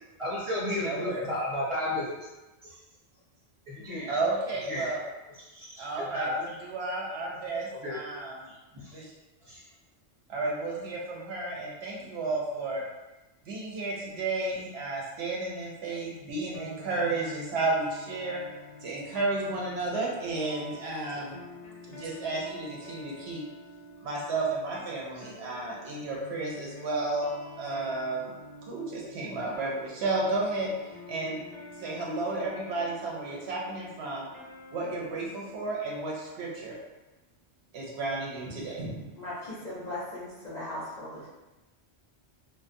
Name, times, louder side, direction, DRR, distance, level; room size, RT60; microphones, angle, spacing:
voice 1, 0.2-2.2 2.6-2.8 3.7-4.1 4.7-4.9 5.4-6.6 7.8-8.0 8.7-8.9 9.5-9.6, left 1 dB, 35° right, -8 dB, 0.6 m, -33 dB
voice 2, 0.8-1.3 4.1-5.0 5.8-8.4 8.9-9.1 10.3-12.8 13.5-18.4 18.8-21.4 21.9-23.4 24.0-28.3 28.7-30.7 31.1-31.4 31.8-34.3 34.7-36.8 37.7-39.0, right 2 dB, 70° right, -3 dB, 0.8 m, -32 dB
sound 1, 16.5-35.7, left 1 dB, 80° left, 0.9 m, -47 dB
voice 3, 39.2-41.3, left 1 dB, 50° left, -9 dB, 0.6 m, -38 dB
2.5 x 2.1 x 2.5 m, 1.1 s
omnidirectional pair, 1.2 m